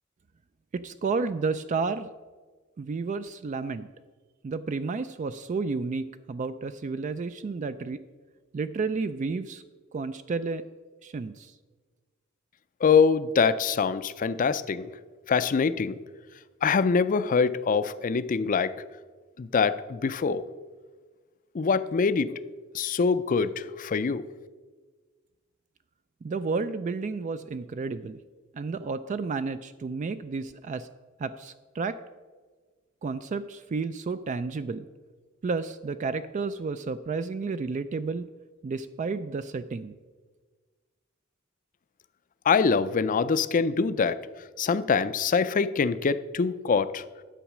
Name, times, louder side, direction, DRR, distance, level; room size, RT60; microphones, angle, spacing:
voice 1, 0.7-2.1 2.8-3.9 4.4-8.0 8.5-9.6 9.9-10.6 11.0-11.5 26.2-28.2 28.5-30.9 31.2-32.0 33.0-34.8 35.4-38.3 38.6-39.9, right 4 dB, 35° right, 12 dB, 0.3 m, -31 dB
voice 2, 12.8-14.9 15.3-15.9 16.6-18.7 19.4-20.4 21.5-22.4 22.7-24.2 42.5-44.2 44.6-47.0, left 5 dB, 40° left, 13 dB, 0.4 m, -24 dB
10.0 x 7.3 x 6.0 m, 1.4 s
head